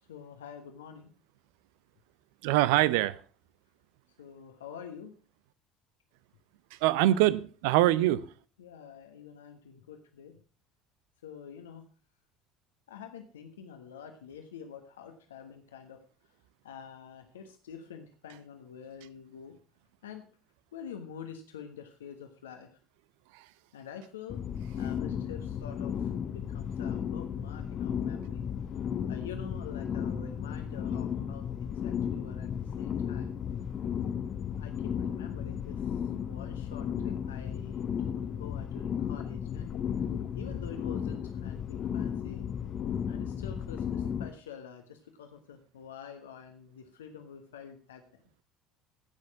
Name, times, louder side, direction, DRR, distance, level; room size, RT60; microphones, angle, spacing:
voice 1, 0.1-1.1 4.2-5.1 8.6-10.4 11.2-11.8 12.9-16.0 16.6-19.5 20.0-20.2 20.7-22.8 23.7-24.4 24.8-28.5 28.7-33.3 34.6-40.1 40.3-42.5 43.1-48.2, left 7 dB, 75° left, 6 dB, 1.2 m, -47 dB
voice 2, 2.4-3.2 6.8-8.3 23.3-23.4, right 15 dB, 65° right, 18 dB, 0.7 m, -24 dB
sound 1, 24.3-44.3, left 8 dB, 40° left, 0.9 m, -34 dB
16.0 x 6.4 x 5.8 m, 0.39 s
figure-of-eight pair, 60°, 0 cm